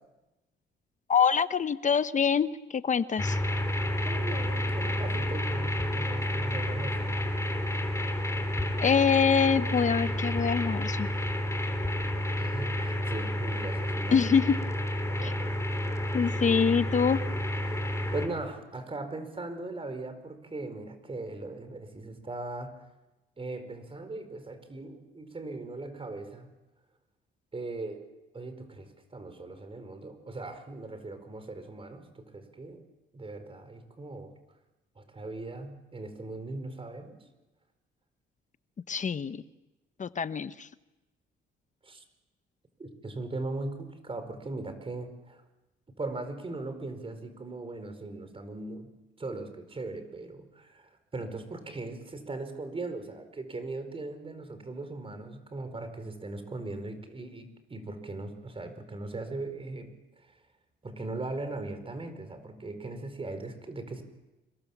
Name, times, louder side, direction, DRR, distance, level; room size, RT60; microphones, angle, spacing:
voice 1, 1.1-3.4 8.8-11.1 14.1-14.6 15.2-15.3 16.1-17.2 38.9-39.4 40.0-40.7, left 6 dB, 40° left, 13 dB, 1.0 m, -25 dB
sound 1, 3.2-18.3, left 1 dB, 15° left, 3.9 m, -30 dB
voice 2, 4.0-7.3 12.3-14.2 15.1-15.5 18.1-22.7 23.4-26.5 27.5-28.0 28.3-32.8 33.1-34.3 34.9-37.2 41.8-42.0 42.8-45.4 46.0-48.9 49.2-59.9 60.2-60.3 60.8-64.0, right 2 dB, 25° right, 9 dB, 4.9 m, -39 dB
26.5 x 23.0 x 7.4 m, 1.0 s
cardioid pair, 90°, 20 cm